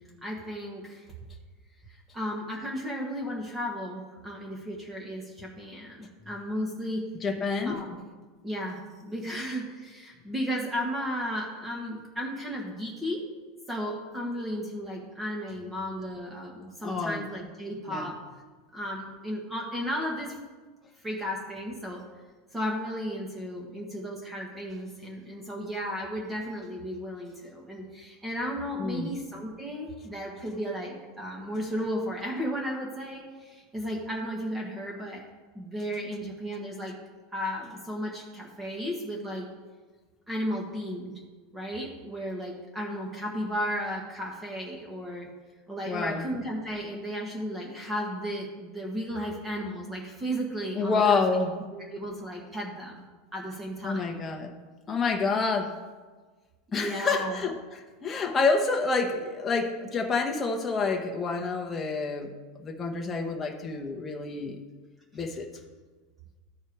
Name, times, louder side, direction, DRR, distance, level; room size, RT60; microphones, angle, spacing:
voice 1, 0.2-1.1 2.1-7.0 7.6-8.0 8.4-13.2 13.7-18.2 18.7-20.4 21.0-22.0 22.5-35.2 35.5-36.9 37.3-39.5 40.3-41.1 41.5-45.3 45.7-51.2 51.7-53.0 53.3-54.0 56.7-57.4, equal, 10° right, -1 dB, 1.4 m, -34 dB
voice 2, 7.2-7.8 16.8-17.2 17.9-18.1 28.8-29.2 45.8-46.2 50.7-51.5 53.8-54.5 54.9-55.8 56.7-62.3 62.6-64.6 65.1-65.5, left 4 dB, 20° left, 1 dB, 1.0 m, -28 dB
13.5 x 4.5 x 4.6 m, 1.4 s
supercardioid pair, 125°, 0 cm